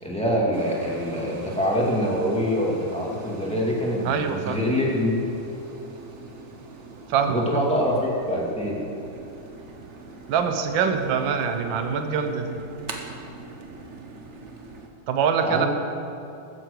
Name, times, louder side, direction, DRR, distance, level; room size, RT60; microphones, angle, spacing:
voice 1, 0.0-5.1 7.3-8.8 15.4-15.7, equal, 5° left, -4 dB, 1.9 m, -25 dB
sound 1, 0.5-14.9, right 3 dB, 45° right, 1.1 m, -42 dB
voice 2, 4.0-4.7 7.1-7.7 10.3-12.6 15.1-15.7, right 6 dB, 70° right, 7 dB, 1.6 m, -24 dB
14.0 x 7.8 x 6.6 m, 2.6 s
omnidirectional pair, 2.3 m